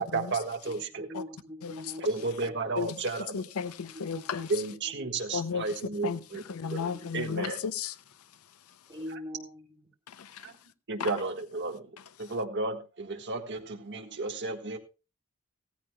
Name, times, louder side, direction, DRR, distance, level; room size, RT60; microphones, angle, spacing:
voice 1, 0.0-1.1 2.0-3.4 4.5-6.4 6.7-7.6 10.4-10.5 10.9-11.9 12.2-14.8, right 3 dB, 55° right, 1.5 m, -33 dB
voice 2, 0.6-2.6 3.9-4.2 4.7-5.1 6.8-7.1 8.9-9.9, equal, 20° right, 3.3 m, -44 dB
voice 3, 3.3-4.5 5.3-5.7 6.0-6.2 6.5-7.9 10.1-10.5 11.0-11.1, left 6 dB, 85° left, 0.5 m, -34 dB
16.0 x 14.5 x 2.2 m
head